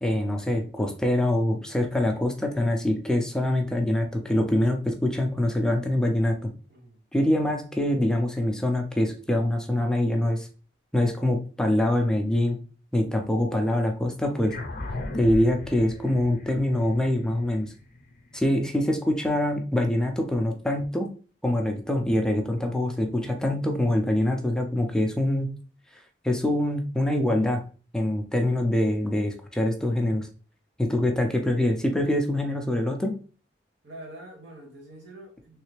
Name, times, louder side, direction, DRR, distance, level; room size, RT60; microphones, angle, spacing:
voice 1, 0.0-6.5 7.1-10.5 10.9-12.6 12.9-14.6 15.1-17.7 18.3-21.1 21.4-25.5 26.2-27.6 27.9-30.3 30.8-33.2, left 1 dB, 5° left, 0.5 m, -24 dB
voice 2, 6.7-7.0 28.0-28.3 33.8-35.6, right 1 dB, 85° right, 1.3 m, -45 dB
sound 1, 14.5-19.2, left 2 dB, 50° left, 0.6 m, -38 dB
3.2 x 3.2 x 3.2 m
head